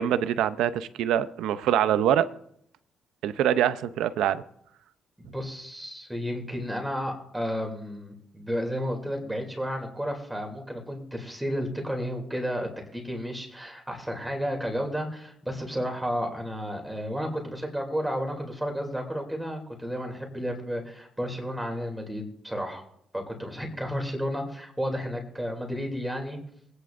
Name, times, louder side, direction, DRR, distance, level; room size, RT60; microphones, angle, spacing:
voice 1, 0.0-2.3 3.2-4.4, right 10 dB, 85° right, 13 dB, 0.6 m, -24 dB
voice 2, 5.2-22.8 23.1-26.4, equal, 5° right, 2 dB, 2.8 m, -32 dB
21.0 x 9.8 x 2.6 m, 0.72 s
cardioid pair, 90°, 0 cm